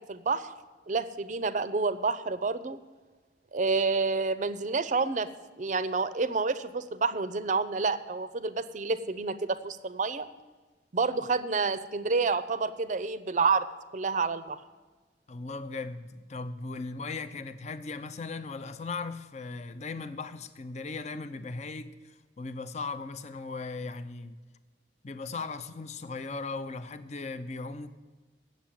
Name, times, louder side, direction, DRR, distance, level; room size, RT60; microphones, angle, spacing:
voice 1, 0.1-0.5 0.9-2.8 3.5-5.3 5.6-10.3 10.9-13.6 13.9-14.6, right 4 dB, 40° right, 0.5 m, -29 dB
voice 2, 15.3-24.4 25.0-27.9, left 3 dB, 35° left, 0.5 m, -38 dB
8.9 x 7.2 x 8.7 m
head